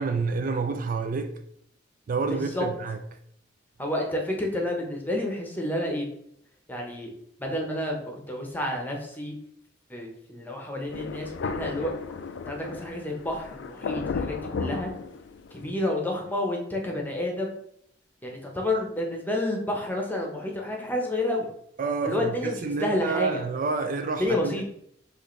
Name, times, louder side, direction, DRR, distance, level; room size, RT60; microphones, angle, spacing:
voice 1, 0.0-1.4 2.1-3.0 21.8-24.7, right 4 dB, 50° right, 0.3 m, -28 dB
voice 2, 2.3-2.7 3.8-6.1 6.7-7.1 7.4-9.4 9.9-11.9 12.5-14.9 15.5-17.5 18.2-21.5 22.0-23.3 24.2-24.7, left 1 dB, 10° left, 0.8 m, -30 dB
Thunder, 10.9-15.7, left 4 dB, 70° left, 0.4 m, -34 dB
6.3 x 2.6 x 3.1 m
head